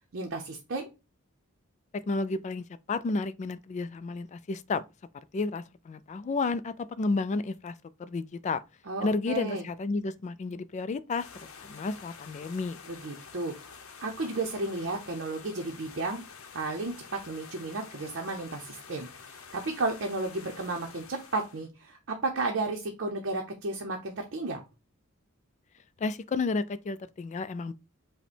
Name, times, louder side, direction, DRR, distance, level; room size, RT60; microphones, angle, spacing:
voice 1, 0.1-0.9 8.9-9.6 12.9-13.5 14.0-16.2 16.5-24.6, right 3 dB, 60° right, 0.7 m, -33 dB
voice 2, 1.9-4.8 5.3-7.7 8.0-8.6 9.0-11.3 11.6-12.8 26.0-27.7, left 3 dB, 35° left, 0.3 m, -31 dB
sound 1, 11.2-21.7, left 5 dB, 85° left, 0.7 m, -48 dB
5.5 x 2.1 x 4.2 m
head